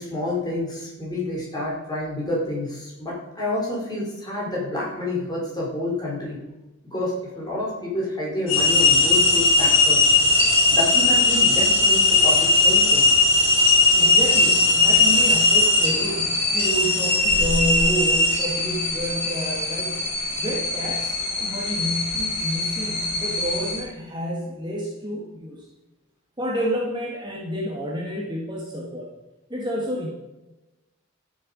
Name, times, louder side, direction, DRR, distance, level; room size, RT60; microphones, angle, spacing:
voice 1, 0.0-6.4 6.9-10.0 10.7-13.1, left 1 dB, 20° left, -4 dB, 4.7 m, -29 dB
sound 1, 8.5-23.8, left 2 dB, 70° left, 4.9 m, -19 dB
voice 2, 14.0-25.7 26.4-29.1 29.5-30.1, equal, 20° right, -3 dB, 1.9 m, -29 dB
13.0 x 7.9 x 5.4 m, 1.0 s
head